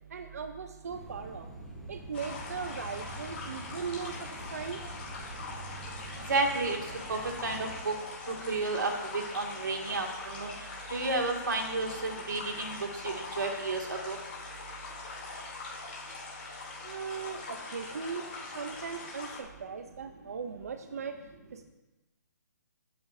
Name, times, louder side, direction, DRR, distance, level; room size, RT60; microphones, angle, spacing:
voice 1, 0.1-1.5 1.9-4.8 16.8-21.6, right 6 dB, 55° right, 7 dB, 0.6 m, -39 dB
sound 1, 0.9-7.8, right 2 dB, ahead, 0.8 m, -45 dB
sound 2, 2.1-19.4, left 3 dB, 35° left, 3.1 m, -42 dB
voice 2, 6.3-6.8 7.1-7.9 8.3-10.5 10.9-12.8 13.0-14.2, right 3 dB, 90° right, 1 dB, 2.2 m, -31 dB
14.5 x 9.3 x 2.7 m, 1.1 s
hypercardioid pair, 175°, 10 cm